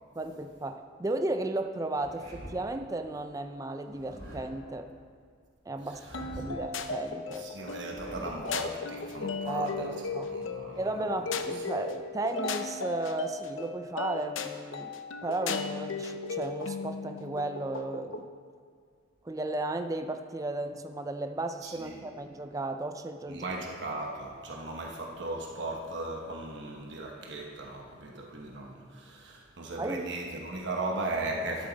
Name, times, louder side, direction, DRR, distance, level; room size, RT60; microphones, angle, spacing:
voice 1, 0.2-4.9 5.7-7.5 9.5-10.3 10.8-14.9 15.2-18.3 19.2-23.5 29.8-30.0, right 2 dB, 15° right, 7 dB, 0.4 m, -34 dB
sound 1, 1.9-2.8 3.8-4.7 5.9-6.7 7.7-8.6, equal, 85° right, 3.3 m, -46 dB
sound 2, 6.1-18.3, left 4 dB, 80° left, 0.6 m, -36 dB
voice 2, 7.3-11.1 21.6-22.1 23.3-31.7, right 2 dB, 60° right, 0 dB, 1.1 m, -37 dB
12.5 x 10.0 x 4.0 m, 2.1 s
head